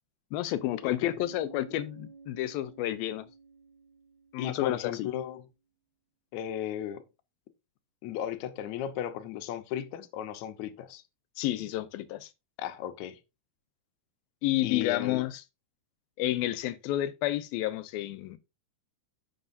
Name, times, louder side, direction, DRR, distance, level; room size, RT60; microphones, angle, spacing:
voice 1, 0.3-3.3 4.3-5.1 11.4-12.3 14.4-15.4 16.2-18.4, left 14 dB, 85° left, 2.4 m, -30 dB
voice 2, 0.8-1.1 4.4-5.5 6.3-7.0 8.0-11.0 12.6-13.2 14.6-15.2, left 10 dB, 70° left, 2.0 m, -35 dB
Bass guitar, 1.2-5.0, right 4 dB, 5° left, 3.0 m, -52 dB
11.0 x 7.4 x 2.7 m
omnidirectional pair, 4.2 m